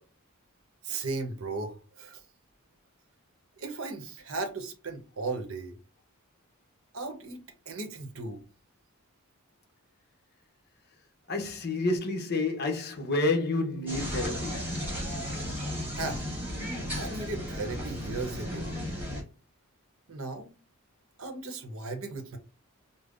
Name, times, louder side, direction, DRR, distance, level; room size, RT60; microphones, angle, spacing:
voice 1, 0.8-2.2 3.6-5.8 6.9-7.4 7.7-8.4 15.9-16.3 16.9-18.7 20.1-20.5 21.2-22.4, right 3 dB, 65° right, 0.8 m, -36 dB
voice 2, 11.3-14.6, left 2 dB, 45° left, 0.8 m, -29 dB
sound 1, 13.9-19.2, equal, 10° right, 1.3 m, -34 dB
5.2 x 2.0 x 2.4 m
head